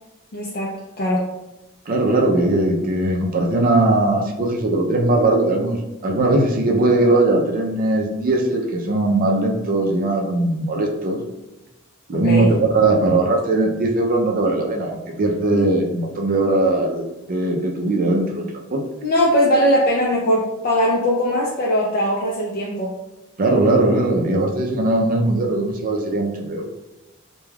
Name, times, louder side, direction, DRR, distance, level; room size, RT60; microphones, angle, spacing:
voice 1, 0.3-1.3 12.2-12.5 15.5-15.7 19.0-22.9, equal, 45° left, -4 dB, 0.4 m, -20 dB
voice 2, 1.9-11.2 12.1-18.4 18.7-18.8 23.4-26.6, right 2 dB, 40° right, 1 dB, 0.4 m, -19 dB
2.3 x 2.2 x 3.2 m, 0.97 s
head